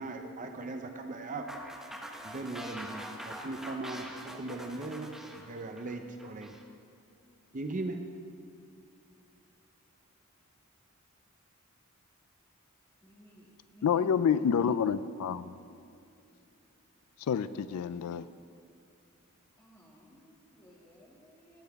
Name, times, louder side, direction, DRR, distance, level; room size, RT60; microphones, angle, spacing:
voice 1, 0.0-1.5 2.2-5.1 5.5-6.5 7.5-8.0, right 2 dB, 35° right, 5 dB, 0.6 m, -38 dB
sound 1, 1.5-6.6, equal, ahead, 0.8 m, -44 dB
voice 2, 13.0-14.8 17.8-18.1 19.6-21.6, equal, 15° left, -5 dB, 2.1 m, -59 dB
voice 3, 13.8-15.6 17.3-18.2, left 7 dB, 90° left, 15 dB, 0.3 m, -28 dB
18.0 x 8.4 x 3.5 m, 2.6 s
head